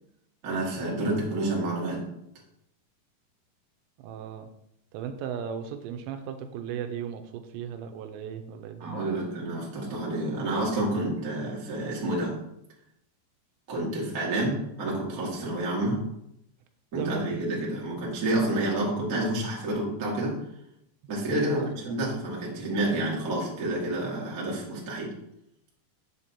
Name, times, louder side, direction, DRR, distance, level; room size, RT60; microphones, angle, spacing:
voice 1, 0.4-2.1 8.8-12.3 13.7-16.0 16.9-20.3 21.1-25.1, right 1 dB, 55° right, -4 dB, 0.9 m, -29 dB
voice 2, 4.0-4.5 4.9-9.2 17.0-17.3 21.3-21.7, right 8 dB, 85° right, 7 dB, 2.8 m, -36 dB
7.8 x 7.5 x 2.8 m, 0.77 s
omnidirectional pair, 5.2 m